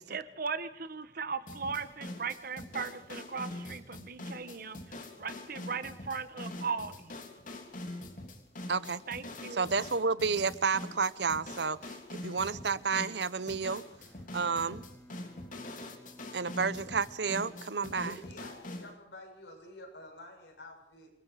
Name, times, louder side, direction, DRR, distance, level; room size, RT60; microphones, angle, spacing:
voice 1, 0.1-7.1 9.1-9.7, right 5 dB, 55° right, 12 dB, 1.4 m, -38 dB
sound 1, 1.5-18.9, left 1 dB, 50° left, 3.3 m, -44 dB
voice 2, 8.7-9.0 9.5-11.8 12.1-13.8 14.3-14.8 16.3-18.2, right 5 dB, 75° right, 17 dB, 0.9 m, -31 dB
Bowed string instrument, 14.0-18.2, equal, 5° left, 4.7 m, -57 dB
voice 3, 18.0-21.1, left 1 dB, 85° left, 1 dB, 7.6 m, -49 dB
28.5 x 21.0 x 4.9 m, 0.80 s
head